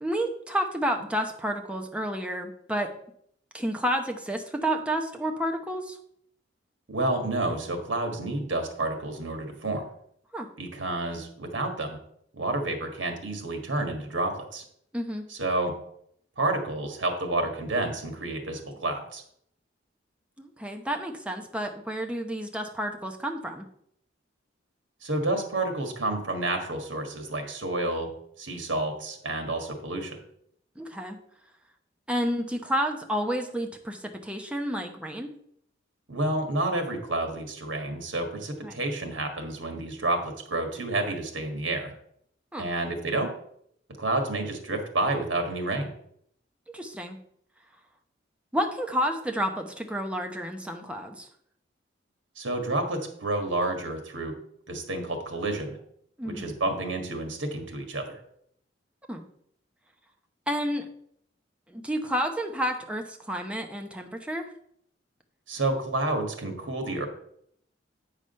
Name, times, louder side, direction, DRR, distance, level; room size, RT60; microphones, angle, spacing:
voice 1, 0.0-2.9 3.5-6.0 10.3-10.5 14.9-15.3 20.4-23.6 30.8-31.2 32.1-35.3 38.6-38.8 42.5-42.7 46.7-47.2 48.5-51.3 56.2-56.5 59.1-59.2 60.5-60.9 61.7-64.4, equal, 5° right, 3 dB, 0.9 m, -30 dB
voice 2, 6.9-9.8 10.6-12.0 12.3-14.6 15.3-15.7 16.4-19.2 25.0-28.1 28.4-30.2 36.1-41.9 42.6-43.3 44.0-45.9 52.4-54.3 54.7-55.8 56.2-58.2 65.5-67.1, right 2 dB, 80° right, 5 dB, 1.6 m, -29 dB
8.4 x 5.0 x 5.4 m, 0.69 s
head